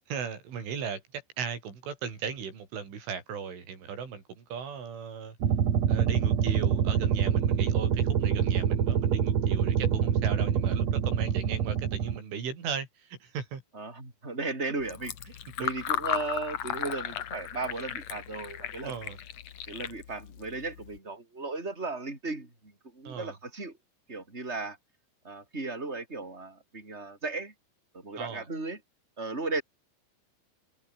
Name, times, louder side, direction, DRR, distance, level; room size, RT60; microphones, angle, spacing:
voice 1, 0.1-5.4 5.9-13.6 15.6-15.7 18.9-19.2 23.1-23.3 28.2-28.4, right 6 dB, 85° right, 7.6 m, -37 dB
sound 1, 5.4-12.2, right 8 dB, 45° right, 2.5 m, -26 dB
voice 2, 13.7-18.9 19.7-23.8 24.1-24.8 25.2-27.5 27.9-28.8 29.2-29.6, right 3 dB, 15° right, 6.7 m, -36 dB
Fill (with liquid), 14.8-21.0, left 10 dB, 75° left, 1.5 m, -36 dB
omnidirectional pair, 5.4 m